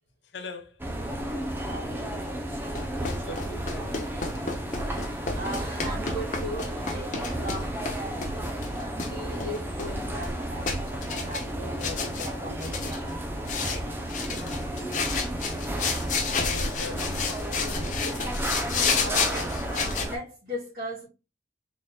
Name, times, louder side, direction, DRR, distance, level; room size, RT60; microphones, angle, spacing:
voice 1, 0.3-1.1 3.0-3.9 15.6-18.3, left 3 dB, 80° left, 0.7 m, -42 dB
sound 1, 0.8-20.2, right 1 dB, 10° right, 0.5 m, -33 dB
voice 2, 1.7-2.2 4.3-4.5 5.0-7.8 8.8-13.2 13.6-13.9 18.9-21.1, equal, 50° right, 2.1 m, -38 dB
sound 2, 2.8-8.0 8.2-9.1 9.4-10.4 10.7-11.5 11.8-12.3 12.6-13.1 13.5-13.8 14.1-20.1, left 5 dB, 45° left, 0.7 m, -31 dB
4.0 x 3.7 x 2.2 m
head